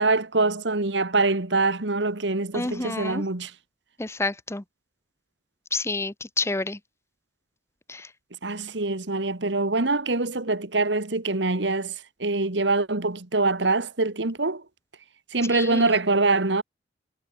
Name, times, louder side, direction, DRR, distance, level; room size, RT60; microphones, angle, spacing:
voice 1, 0.0-3.5 8.4-11.9 12.2-14.6 15.3-16.6, right 3 dB, 70° right, 1.8 m, -24 dB
voice 2, 2.5-3.2 4.0-4.6 5.7-6.8 7.9-8.1 15.5-15.9, left 2 dB, 15° left, 0.8 m, -29 dB
head